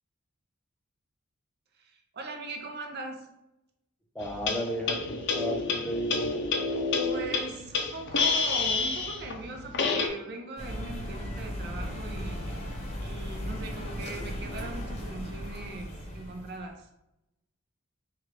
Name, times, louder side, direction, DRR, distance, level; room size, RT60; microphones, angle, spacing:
voice 1, 1.8-3.3 7.0-12.6 13.0-16.9, right 2 dB, 50° right, 3 dB, 0.7 m, -40 dB
voice 2, 4.1-6.3, equal, 5° left, 0 dB, 0.6 m, -34 dB
sound 1, 4.2-10.1, left 4 dB, 55° left, 0.5 m, -29 dB
sound 2, 10.6-16.7, equal, 30° left, 0.8 m, -37 dB
4.6 x 2.4 x 3.3 m, 0.87 s
head